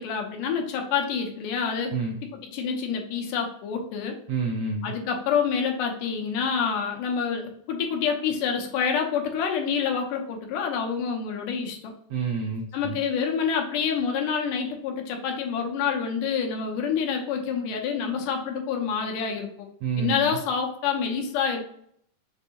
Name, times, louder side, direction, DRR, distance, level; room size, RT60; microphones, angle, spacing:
voice 1, 0.0-2.0 2.3-4.2 4.8-11.9 12.7-19.7 20.0-21.6, left 6 dB, 85° left, 2 dB, 2.4 m, -27 dB
voice 2, 4.3-4.9 12.1-13.0 19.8-20.4, right 5 dB, 80° right, 0 dB, 1.5 m, -29 dB
6.5 x 2.6 x 2.7 m, 0.67 s
omnidirectional pair, 3.7 m